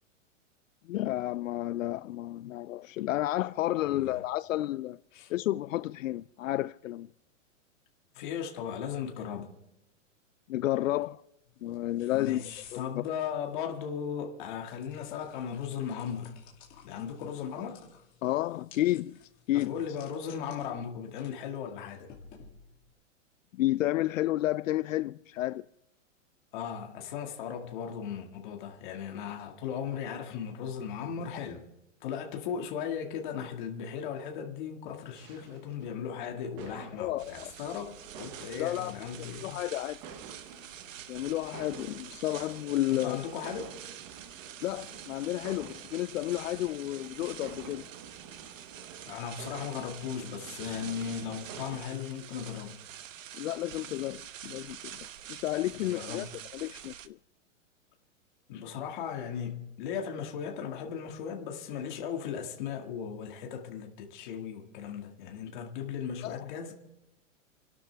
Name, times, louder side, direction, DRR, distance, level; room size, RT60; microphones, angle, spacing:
voice 1, 0.9-5.0 5.3-7.1 10.5-11.2 11.6-12.4 12.7-12.9 17.6-17.7 18.2-19.2 19.5-19.7 23.6-25.7 37.0-37.5 38.6-38.9 39.2-40.0 41.1-43.2 44.6-47.9 53.3-56.3 56.5-57.2 66.2-66.5, left 15 dB, 80° left, 0.5 m, -31 dB
voice 2, 3.9-4.2 5.1-5.3 8.1-9.5 12.1-16.4 16.8-17.8 19.5-22.1 26.5-31.7 32.0-39.6 42.9-43.8 49.1-52.8 55.8-56.3 58.5-66.7, left 8 dB, 40° left, 2.1 m, -37 dB
sound 1, 11.4-22.9, left 7 dB, 20° left, 2.5 m, -55 dB
sound 2, 35.1-51.8, right 6 dB, 20° right, 0.8 m, -50 dB
sound 3, 37.2-57.1, right 10 dB, 75° right, 1.1 m, -47 dB
29.0 x 12.0 x 3.5 m
hypercardioid pair, 170°, 39 cm